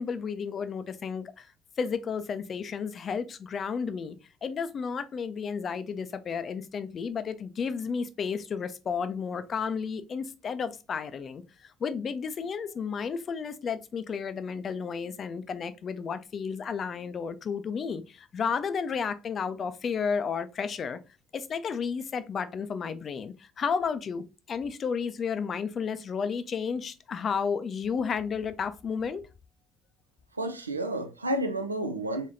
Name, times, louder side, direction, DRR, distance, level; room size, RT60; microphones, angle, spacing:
voice 1, 0.0-1.5 1.8-21.0 21.3-29.2, left 6 dB, 40° left, 0.4 m, -32 dB
voice 2, 30.3-32.3, right 1 dB, 85° right, 0.4 m, -31 dB
3.6 x 3.4 x 2.6 m
figure-of-eight pair, 55°, 0 cm